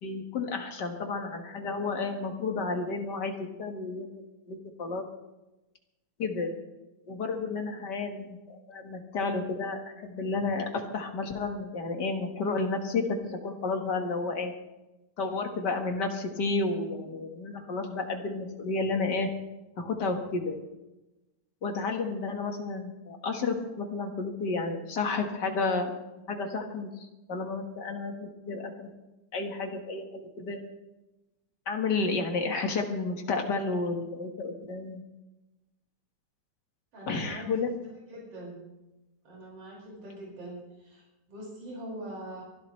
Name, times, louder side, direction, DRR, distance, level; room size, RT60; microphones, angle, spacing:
voice 1, 0.0-4.1 4.5-5.1 6.2-6.5 7.1-14.5 15.2-19.3 19.8-20.6 21.6-25.9 26.3-26.9 27.3-28.9 29.3-30.6 31.7-35.0 37.1-37.7, left 3 dB, 40° left, 4 dB, 1.8 m, -31 dB
voice 2, 36.9-38.6 39.2-42.4, right 1 dB, 50° right, -3 dB, 6.5 m, -43 dB
24.5 x 12.5 x 3.3 m, 1.0 s
omnidirectional pair, 3.5 m